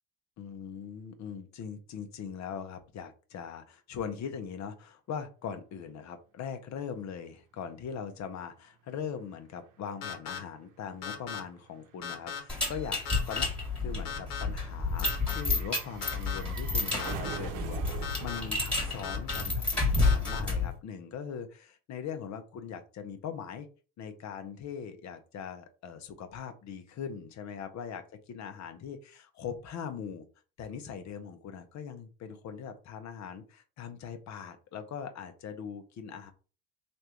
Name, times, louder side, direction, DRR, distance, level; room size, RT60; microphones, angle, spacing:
voice 1, 0.4-13.0 13.3-13.5 13.8-23.7 24.0-30.3 30.6-36.3, left 7 dB, 50° left, 8 dB, 0.9 m, -41 dB
sound 1, 9.1-9.2 9.4-19.8 20.1-20.2, right 7 dB, 65° right, 0.9 m, -45 dB
sound 2, 10.0-10.4 11.0-11.4 12.0-12.4 13.0-13.4 14.0-14.4 15.0-15.4 16.0-16.4 17.0-17.4 18.0-18.4 19.0-19.4 20.0-20.4, left 7 dB, 80° left, 1.2 m, -37 dB
sound 3, 12.5-20.8, left 3 dB, 5° left, 1.8 m, -30 dB
3.3 x 2.6 x 4.4 m, 0.35 s
supercardioid pair, 100°, 34 cm